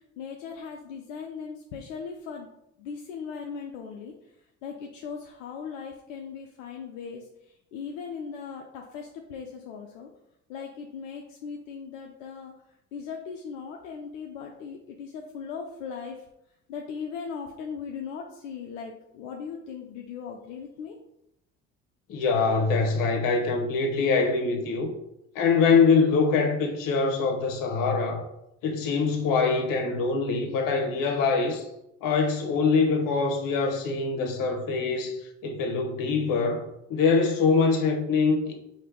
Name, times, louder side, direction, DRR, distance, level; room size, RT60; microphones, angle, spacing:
voice 1, 0.2-2.5 2.8-4.1 4.6-10.1 10.5-12.5 12.9-16.2 16.7-21.0, left 6 dB, 80° left, 0.6 m, -38 dB
voice 2, 22.1-24.9 25.3-28.2 28.6-31.6 32.0-36.6 36.9-38.5, left 4 dB, 60° left, 1.0 m, -24 dB
3.3 x 2.8 x 4.6 m
hypercardioid pair, 60°, 37 cm